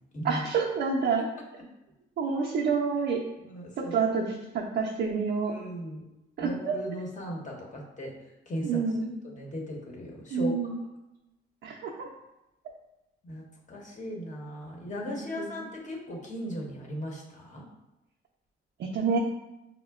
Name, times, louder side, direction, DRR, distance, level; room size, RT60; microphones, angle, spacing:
voice 1, 0.2-1.3 2.2-3.2 3.9-5.5 6.4-6.8 8.6-9.1 10.3-10.8 11.6-11.9 15.4-15.5 18.8-19.2, right 5 dB, 60° right, -2 dB, 0.5 m, -28 dB
voice 2, 3.4-4.0 5.5-6.0 6.4-8.1 8.5-8.8 9.2-10.5 13.2-17.7, equal, 40° left, -2 dB, 1.0 m, -37 dB
5.4 x 2.1 x 2.3 m, 0.95 s
cardioid pair, 90°, 20 cm